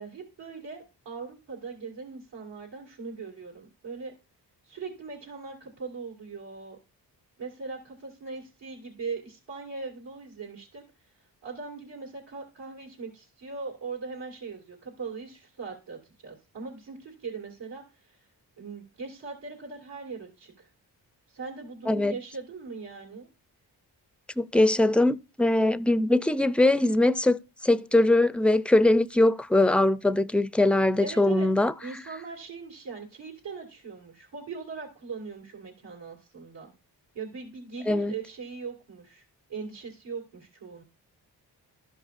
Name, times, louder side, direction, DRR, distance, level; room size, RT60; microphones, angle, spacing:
voice 1, 0.0-4.1 4.6-6.8 7.4-10.8 11.4-18.2 18.6-20.7 21.3-23.3 31.0-31.5 31.8-36.7 37.1-39.2 39.5-40.8, right 4 dB, 80° right, 2.4 m, -40 dB
voice 2, 24.4-31.7 37.9-38.1, left 1 dB, 5° left, 0.4 m, -22 dB
13.0 x 5.4 x 2.5 m
cardioid pair, 45°, 42 cm